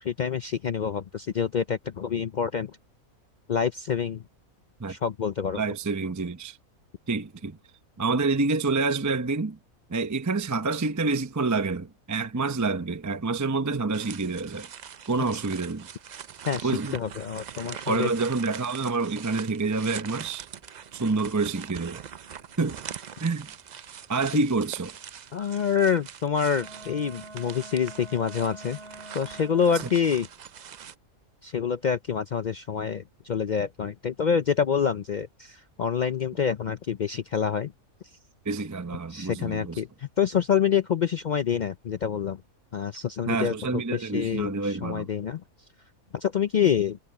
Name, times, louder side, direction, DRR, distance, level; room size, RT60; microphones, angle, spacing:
voice 1, 0.0-2.8 3.5-4.2 4.9-5.6 15.3-15.4 16.5-18.1 25.3-28.8 29.1-30.3 31.4-37.7 39.1-42.4 42.7-45.4 46.1-47.0, left 7 dB, 75° left, 0.4 m, -27 dB
voice 2, 5.6-6.6 7.1-7.6 8.0-9.6 9.9-14.7 15.1-15.9 16.6-16.9 17.9-20.5 20.9-22.0 22.6-22.8 23.2-23.5 24.1-24.9 38.5-39.8 43.3-45.1, right 3 dB, 20° right, 0.5 m, -27 dB
sound 1, 13.9-30.9, right 8 dB, 75° right, 0.4 m, -43 dB
Wind instrument woodwind instrument, 26.5-30.1, right 2 dB, 50° right, 3.2 m, -46 dB
omnidirectional pair, 1.5 m